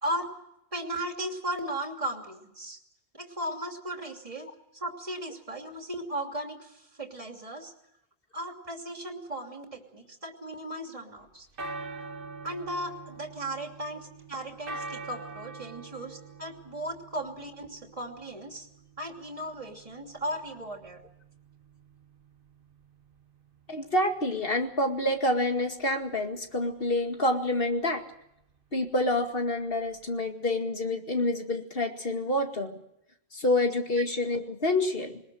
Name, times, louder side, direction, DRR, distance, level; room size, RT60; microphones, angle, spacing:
voice 1, 0.7-2.8 3.1-4.5 4.7-7.7 8.3-11.5 12.4-18.7 19.0-21.0, right 1 dB, 30° right, 2 dB, 3.0 m, -36 dB
sound 1, 11.2-30.3, right 3 dB, 55° right, 1.6 m, -46 dB
voice 2, 23.7-28.0 28.7-32.8 33.3-35.2, left 1 dB, 60° left, 4 dB, 2.4 m, -27 dB
22.0 x 20.0 x 7.8 m, 0.79 s
omnidirectional pair, 1.1 m